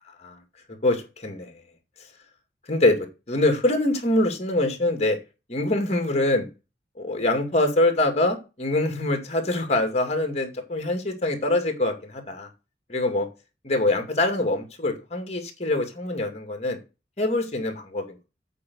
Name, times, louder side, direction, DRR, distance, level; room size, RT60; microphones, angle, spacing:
voice 1, 0.8-1.5 2.7-3.0 3.3-5.2 5.5-6.5 7.0-12.5 12.9-13.3 13.6-16.8 17.2-18.2, left 2 dB, 40° left, 5 dB, 2.4 m, -24 dB
8.4 x 5.1 x 6.3 m, 0.29 s
head